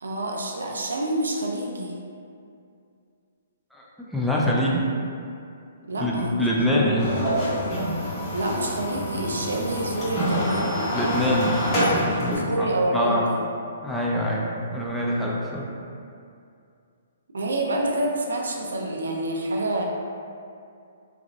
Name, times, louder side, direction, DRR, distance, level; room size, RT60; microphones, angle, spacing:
voice 1, 0.0-1.9 5.9-6.4 6.7-7.0 8.3-10.9 12.4-13.4 17.3-19.9, right 1 dB, 85° right, 0 dB, 0.4 m, -27 dB
voice 2, 3.7-4.9 6.0-7.2 10.9-13.3 13.8-15.7, equal, ahead, -6 dB, 0.4 m, -25 dB
sound 1, 7.0-12.4, equal, 25° left, 1.5 m, -26 dB
3.2 x 2.4 x 2.4 m, 2.4 s
hypercardioid pair, 140°, 0 cm